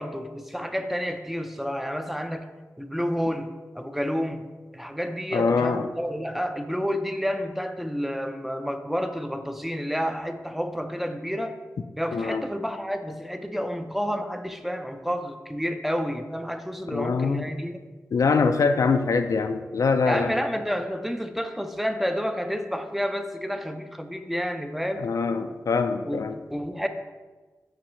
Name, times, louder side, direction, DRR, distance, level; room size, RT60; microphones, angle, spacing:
voice 1, 0.0-2.5 2.8-4.5 4.7-11.6 12.0-17.8 18.8-18.9 20.0-25.1 26.1-26.9, equal, 5° right, 7 dB, 0.4 m, -30 dB
voice 2, 5.3-5.9 12.1-12.5 16.9-17.4 18.1-20.4 25.0-26.4, left 4 dB, 70° left, 8 dB, 0.3 m, -23 dB
5.8 x 3.1 x 5.4 m, 1.3 s
wide cardioid pair, 85°, 6 cm